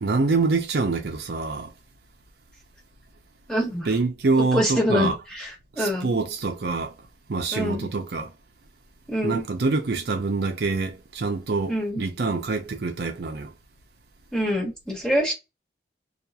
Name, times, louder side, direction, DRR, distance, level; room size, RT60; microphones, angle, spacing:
voice 1, 0.0-1.7 3.9-5.2 5.8-6.9 7.3-8.3 9.2-13.5, right 3 dB, 65° right, 0.5 m, -25 dB
voice 2, 3.5-3.9 4.4-6.2 7.5-7.9 9.1-9.4 11.7-12.0 14.3-15.3, equal, 5° left, 1.2 m, -25 dB
2.7 x 2.4 x 2.3 m
head